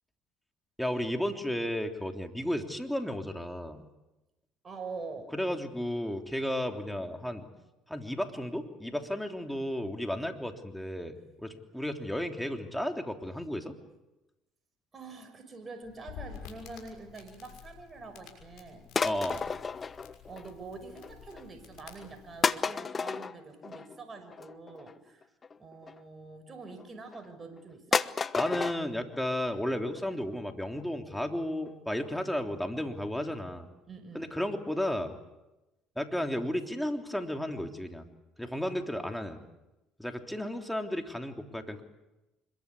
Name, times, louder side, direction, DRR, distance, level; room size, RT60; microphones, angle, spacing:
voice 1, 0.8-3.8 5.3-7.5 7.9-13.7 19.0-19.4 28.4-33.7 34.1-35.1 35.9-38.1 38.4-39.4 40.0-41.8, left 1 dB, 5° left, 4 dB, 3.3 m, -33 dB
voice 2, 4.6-5.3 14.9-18.8 20.3-25.3 25.6-28.0 33.9-34.3, right 3 dB, 30° right, 6 dB, 5.9 m, -45 dB
Crackle, 15.8-22.5, left 8 dB, 75° left, 6.2 m, -50 dB
sound 1, 18.9-20.6 20.9-21.4 22.0-22.1 22.4-26.0 26.7-27.3 27.6-27.7 27.9-28.8 29.1-29.2 29.5-29.6 30.0-30.1 30.3-30.4 30.8-30.9 31.1-31.2 31.7-31.8 32.0-32.1, left 5 dB, 35° left, 1.1 m, -32 dB
25.5 x 22.5 x 8.4 m, 0.99 s
supercardioid pair, 75°, 0 cm